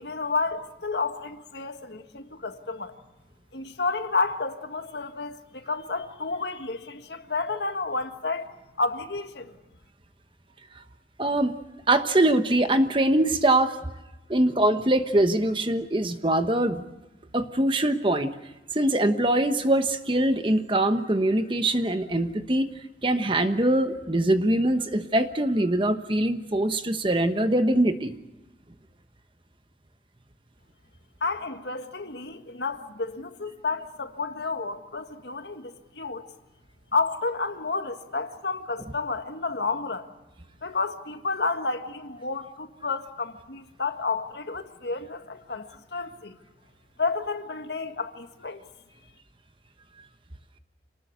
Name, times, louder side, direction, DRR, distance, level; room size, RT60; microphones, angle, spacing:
voice 1, 0.0-2.9 3.5-9.5 31.2-36.3 36.9-40.1 40.6-46.4 47.0-48.6, left 3 dB, 75° left, 1.7 m, -31 dB
voice 2, 11.2-11.5 11.9-13.8 14.3-16.8 17.3-18.3 18.7-22.7 23.0-28.2, right 1 dB, 30° right, 1.2 m, -23 dB
26.5 x 19.5 x 8.1 m
head